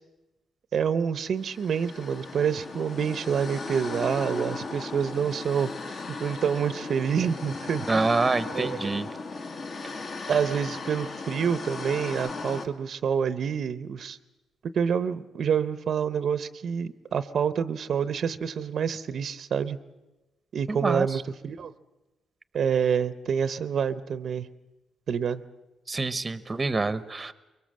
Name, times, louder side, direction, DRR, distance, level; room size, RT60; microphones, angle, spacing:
voice 1, 0.7-8.0 8.5-9.0 10.3-14.2 14.7-19.8 20.5-21.7 22.5-24.5 25.1-25.4, right 7 dB, 55° right, 14 dB, 0.7 m, -27 dB
sound 1, 1.4-12.7, left 3 dB, 45° left, 1.9 m, -37 dB
voice 2, 7.9-9.1 20.7-21.2 25.9-27.3, right 3 dB, 20° right, 15 dB, 0.9 m, -26 dB
23.5 x 23.0 x 7.5 m, 1.1 s
cardioid pair, 125°, 0 cm